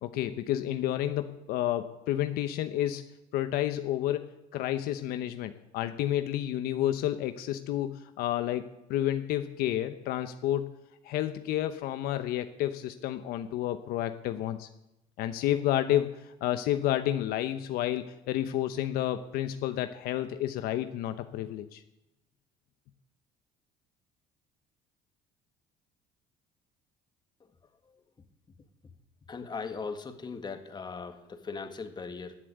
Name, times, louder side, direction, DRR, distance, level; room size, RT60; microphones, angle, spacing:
voice 1, 0.0-3.1 3.3-8.6 8.9-10.7 11.0-14.7 15.2-21.8, left 12 dB, 75° left, 9 dB, 0.9 m, -30 dB
voice 2, 29.3-32.4, left 4 dB, 30° left, 7 dB, 1.9 m, -39 dB
15.0 x 7.7 x 10.0 m, 0.89 s
supercardioid pair, 95°, 16 cm